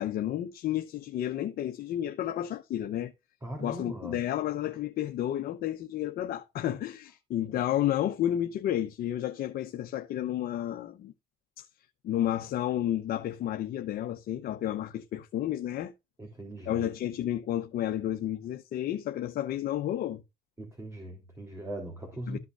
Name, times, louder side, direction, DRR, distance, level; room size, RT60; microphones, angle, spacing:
voice 1, 0.0-3.1 3.6-11.1 11.6-11.7 12.0-15.9 16.7-20.2 22.3-22.4, left 12 dB, 65° left, 1.0 m, -31 dB
voice 2, 3.4-4.2 16.2-16.8 20.6-22.4, right 1 dB, 15° right, 3.4 m, -40 dB
14.0 x 6.0 x 2.5 m
cardioid pair, 110°, 17 cm